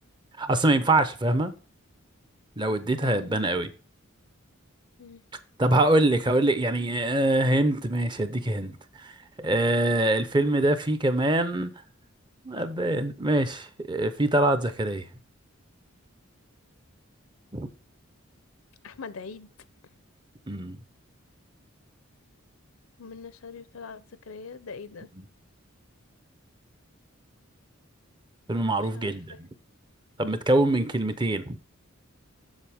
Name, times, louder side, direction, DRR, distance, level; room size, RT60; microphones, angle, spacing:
voice 1, 0.4-1.5 2.6-3.7 5.6-11.7 12.4-15.1 17.5-17.7 20.5-20.8 25.2-25.3 28.5-29.5 30.2-31.6, right 1 dB, 20° right, 0.6 m, -24 dB
voice 2, 3.0-3.3 5.0-5.2 18.8-19.5 23.0-25.1 28.9-29.4, left 5 dB, 75° left, 0.6 m, -42 dB
7.4 x 6.7 x 3.5 m
head